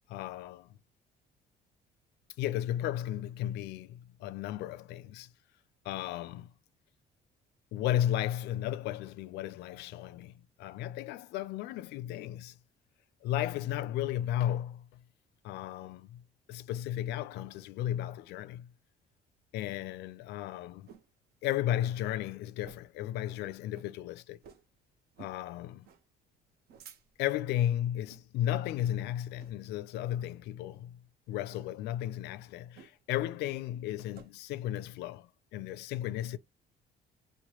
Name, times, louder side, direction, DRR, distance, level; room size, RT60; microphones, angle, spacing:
voice 1, 0.1-0.7 2.4-5.3 5.8-6.5 7.7-12.6 13.2-14.9 15.4-16.2 16.5-18.7 19.5-20.9 21.4-24.4 25.2-25.9 27.2-31.0 31.3-36.4, left 12 dB, 80° left, 0.4 m, -34 dB
sound 1, 19.9-21.1 21.5-21.6 21.9-22.1 22.6-23.0 23.3-23.4 23.7-23.9 24.4-24.7 25.1-25.4 25.8-26.0 26.5-27.4 28.0-28.3 28.7-28.9 29.4-29.8 30.2-30.4 31.4-31.7 32.7-33.2 33.5-34.3, right 7 dB, 65° right, 0.7 m, -55 dB
3.0 x 2.2 x 4.2 m
cardioid pair, 110°, 17 cm